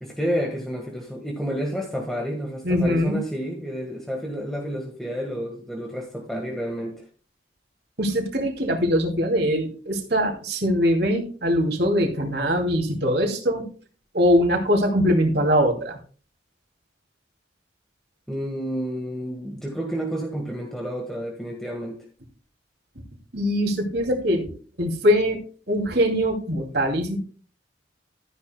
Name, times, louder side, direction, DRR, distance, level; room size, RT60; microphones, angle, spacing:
voice 1, 0.0-7.0 18.3-22.0, equal, ahead, 0 dB, 1.5 m, -30 dB
voice 2, 2.6-3.2 8.0-13.7 14.1-16.0 23.3-24.5 24.8-25.4 25.7-27.2, equal, 55° right, 2 dB, 2.6 m, -22 dB
13.5 x 10.5 x 2.2 m, 0.40 s
head